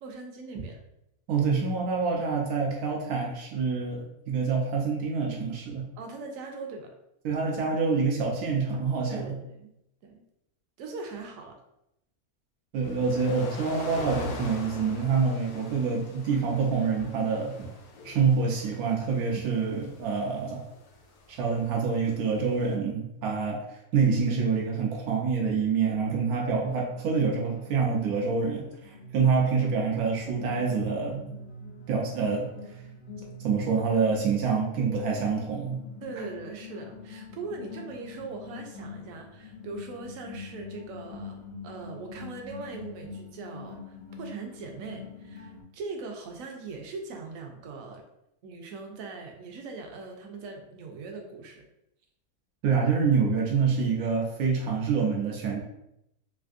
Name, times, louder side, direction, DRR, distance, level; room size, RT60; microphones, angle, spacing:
voice 1, 0.0-0.8 6.0-6.9 9.1-9.7 10.0-10.2 10.8-11.6 36.0-48.0 48.4-51.6, right 3 dB, 70° right, 3 dB, 0.9 m, -40 dB
voice 2, 1.3-5.9 7.2-9.3 12.7-17.7 18.0-20.6 21.3-31.3 31.9-32.5 33.4-35.8 52.6-55.6, right 5 dB, 90° right, -2 dB, 1.1 m, -26 dB
sound 1, 12.8-22.7, left 2 dB, 85° left, 1.1 m, -43 dB
sound 2, 26.3-45.6, left 3 dB, 60° left, 0.6 m, -45 dB
3.4 x 2.5 x 2.4 m, 0.82 s
omnidirectional pair, 1.5 m